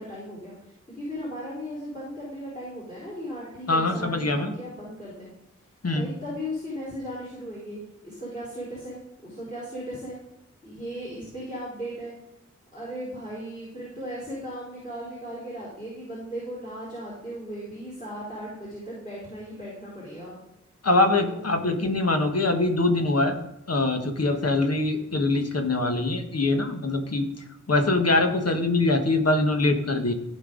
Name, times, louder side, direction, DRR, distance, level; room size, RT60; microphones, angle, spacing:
voice 1, 0.0-5.3 5.9-10.2 10.6-12.1 12.7-20.4 21.2-21.9, equal, 25° left, -7 dB, 4.4 m, -37 dB
voice 2, 3.7-4.5 5.8-6.1 20.8-23.3 23.7-27.3 27.7-30.1, left 2 dB, 55° left, 5 dB, 1.5 m, -23 dB
16.0 x 5.5 x 3.9 m, 0.88 s
wide cardioid pair, 90°, 30 cm